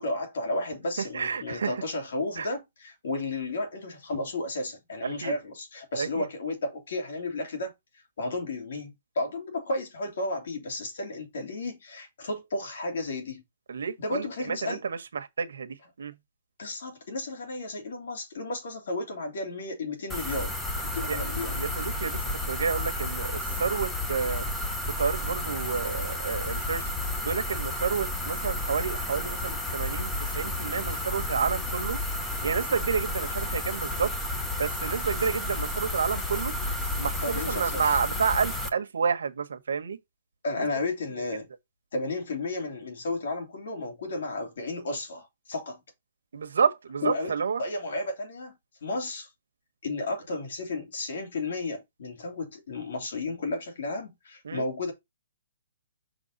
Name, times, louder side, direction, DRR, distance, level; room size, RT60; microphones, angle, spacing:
voice 1, 0.0-7.7 8.2-13.4 14.0-14.8 16.6-20.5 20.8-21.5 37.2-37.8 40.4-41.5 41.9-45.8 47.0-47.3 47.6-48.5 48.8-49.3 49.8-54.9, left 2 dB, 55° left, 3.0 m, -33 dB
voice 2, 1.0-1.8 2.4-2.5 5.0-5.4 5.9-6.3 13.7-16.2 21.1-21.2 21.5-22.2 22.5-24.4 24.8-26.9 27.2-32.0 32.4-34.1 34.6-36.5 37.0-40.0 40.6-40.7 46.3-47.6 54.4-54.6, right 6 dB, 80° right, 1.2 m, -30 dB
sound 1, 20.1-38.7, left 1 dB, 5° left, 0.6 m, -32 dB
6.5 x 4.0 x 4.0 m
hypercardioid pair, 175°, 0 cm